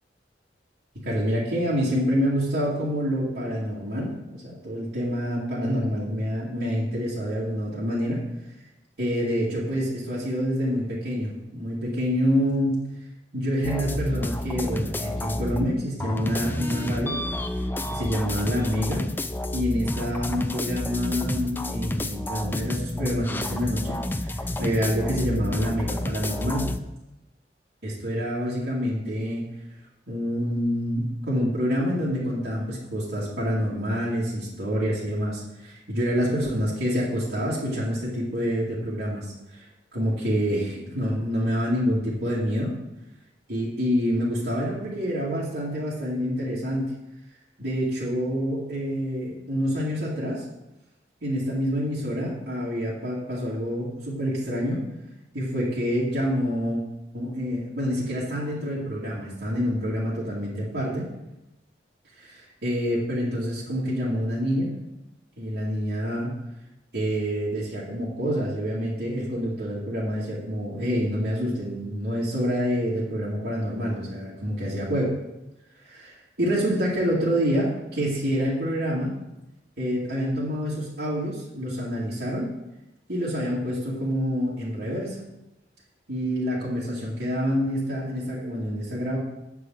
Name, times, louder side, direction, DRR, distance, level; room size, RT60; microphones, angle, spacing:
voice 1, 1.0-8.2 9.0-12.8 13.3-17.2 17.9-19.0 19.5-26.7 27.8-29.4 30.1-39.7 39.9-42.7 43.5-46.9 47.6-50.4 51.2-54.8 55.3-56.8 57.1-61.1 62.2-64.7 65.4-66.3 66.9-75.1 75.8-79.1 79.8-82.5 83.1-85.2 86.1-89.2, equal, 75° right, -10 dB, 2.4 m, -27 dB
sound 1, 13.6-15.7 16.0-26.8, left 1 dB, 10° left, 0.4 m, -30 dB
9.2 x 4.9 x 7.6 m, 0.95 s
head